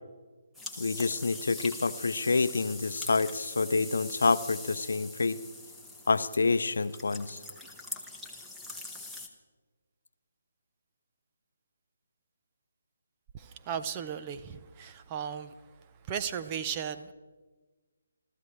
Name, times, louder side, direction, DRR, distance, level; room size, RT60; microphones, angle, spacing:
sound 1, 0.5-9.3, left 2 dB, ahead, 1.2 m, -43 dB
voice 1, 0.8-5.4 6.1-7.4, left 4 dB, 65° left, 13 dB, 0.7 m, -28 dB
voice 2, 13.7-15.5 16.1-17.1, right 8 dB, 25° right, 10 dB, 0.7 m, -35 dB
29.0 x 13.5 x 3.3 m, 1.3 s
figure-of-eight pair, 145°, 0 cm